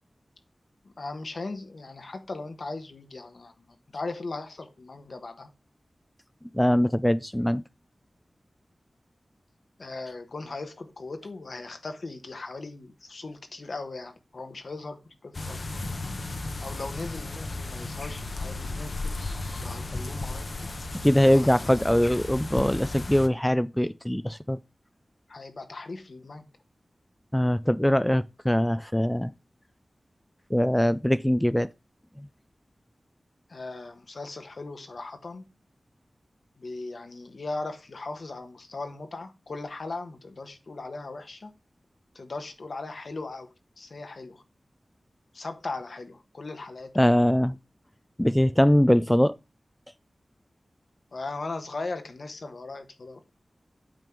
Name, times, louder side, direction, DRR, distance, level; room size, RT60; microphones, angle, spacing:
voice 1, 0.8-5.5 9.8-16.1 16.6-19.2 19.6-20.7 21.3-21.7 25.3-26.5 33.5-35.4 36.6-41.5 42.1-44.4 45.3-46.9 51.1-53.2, left 3 dB, 70° left, 1.3 m, -38 dB
voice 2, 6.5-7.6 21.0-24.6 27.3-29.3 30.5-31.7 47.0-47.6 48.2-49.3, equal, 5° left, 0.4 m, -22 dB
sound 1, 15.3-23.3, left 2 dB, 55° left, 0.9 m, -34 dB
9.0 x 3.5 x 6.0 m
wide cardioid pair, 60°, 0 cm